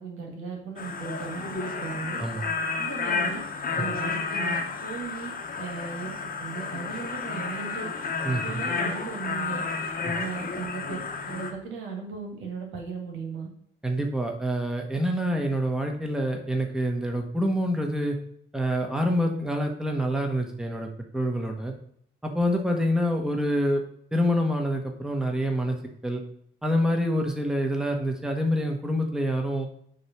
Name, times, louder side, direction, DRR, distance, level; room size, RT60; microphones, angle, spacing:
voice 1, 0.0-2.2 2.8-3.4 3.7-5.3 5.6-7.9 8.4-9.6 10.1-11.0 11.3-13.5, right 5 dB, 85° right, 0 dB, 1.9 m, -37 dB
sound 1, 0.8-11.5, left 4 dB, 45° left, 1.1 m, -31 dB
voice 2, 8.2-8.6 10.1-10.2 13.8-18.2 18.5-20.9 21.1-21.7 22.2-23.8 24.1-25.8 26.0-26.2 26.6-29.7, equal, 5° right, 2 dB, 1.1 m, -26 dB
6.6 x 3.2 x 5.8 m, 0.67 s
cardioid pair, 90°, 20 cm